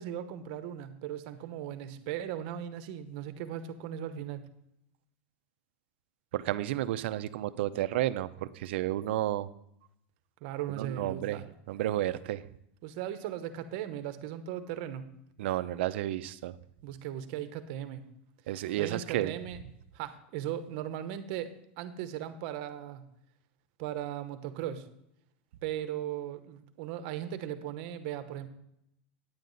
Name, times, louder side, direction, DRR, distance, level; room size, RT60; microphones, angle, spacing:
voice 1, 0.0-4.5 10.4-11.5 12.8-15.1 16.8-18.1 18.8-19.6 19.9-23.0 23.8-24.9 25.6-28.5, right 11 dB, 45° right, 10 dB, 0.9 m, -38 dB
voice 2, 6.3-9.5 10.8-12.4 15.4-16.6 18.5-19.3, right 14 dB, 60° right, 13 dB, 0.5 m, -32 dB
9.6 x 9.2 x 4.0 m, 0.78 s
supercardioid pair, 160°, 7 cm